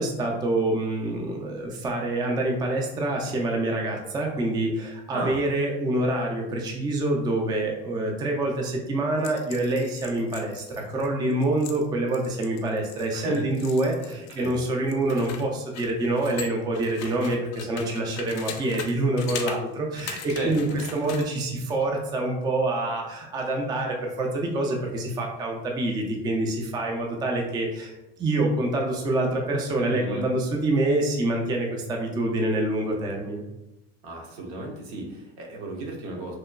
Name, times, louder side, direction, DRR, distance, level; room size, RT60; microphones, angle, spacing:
voice 1, 0.0-20.7 20.9-33.5, right 2 dB, 15° right, 0 dB, 0.3 m, -26 dB
voice 2, 5.1-5.4 13.1-13.8 14.0-14.6 20.0-21.0 29.8-30.3 34.0-36.4, right 2 dB, 70° right, 0 dB, 0.8 m, -34 dB
sound 1, 9.2-14.6 14.9-18.9 19.2-19.6 20.0-21.3, left 7 dB, 55° left, 0.4 m, -40 dB
2.9 x 2.1 x 2.3 m, 0.93 s
supercardioid pair, 90°, 33 cm